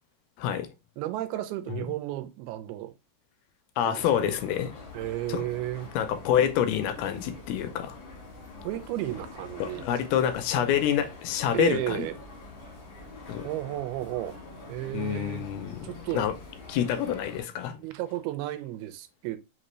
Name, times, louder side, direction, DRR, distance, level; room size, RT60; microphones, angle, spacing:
voice 1, 0.4-0.7 1.7-1.8 3.8-4.7 5.3-5.5 6.0-8.0 9.6-12.1 13.3-13.5 14.9-15.9 16.1-16.4 16.7-17.8, left 10 dB, 85° left, 2.4 m, -27 dB
voice 2, 1.0-2.9 3.8-4.3 4.9-5.9 8.6-9.8 11.5-12.1 13.4-14.4 14.7-15.5 15.8-16.3 17.8-19.4, right 15 dB, 90° right, 2.6 m, -33 dB
sound 1, 4.0-17.4, left 3 dB, 60° left, 1.2 m, -45 dB
5.9 x 2.7 x 3.0 m
omnidirectional pair, 4.4 m